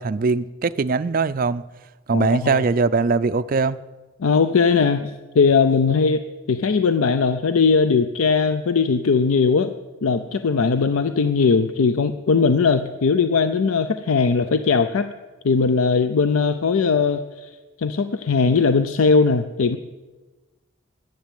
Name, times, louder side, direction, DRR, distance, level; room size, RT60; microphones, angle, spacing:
voice 1, 0.0-1.6 2.1-3.8, right 4 dB, 40° right, 12 dB, 0.4 m, -21 dB
voice 2, 2.1-2.6 4.2-6.2 6.5-9.7 10.0-15.1 15.4-17.5 17.8-19.8, left 5 dB, 85° left, 10 dB, 0.5 m, -19 dB
10.5 x 10.5 x 9.2 m, 1.2 s
head